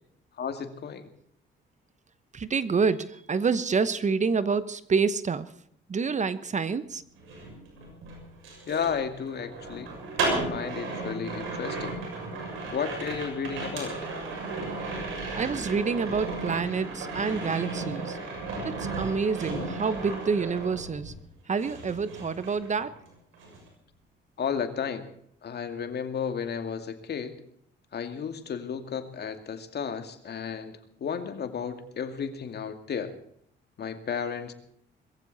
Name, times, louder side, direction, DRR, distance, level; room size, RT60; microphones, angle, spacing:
voice 1, 0.4-1.1 8.7-9.9 10.2-12.0 12.7-13.9 24.4-25.1 25.4-27.4 27.9-33.1 33.8-34.5, left 7 dB, 55° left, 8 dB, 2.4 m, -33 dB
voice 2, 2.3-5.5 5.9-7.0 15.4-18.2 18.6-21.1 21.5-22.9, right 5 dB, 35° right, 15 dB, 1.0 m, -27 dB
sound 1, 7.1-21.3 21.6-23.1 23.3-23.7, right 3 dB, 90° right, 6.7 m, -35 dB
21.5 x 15.0 x 4.2 m, 0.68 s
cardioid pair, 90°, 20 cm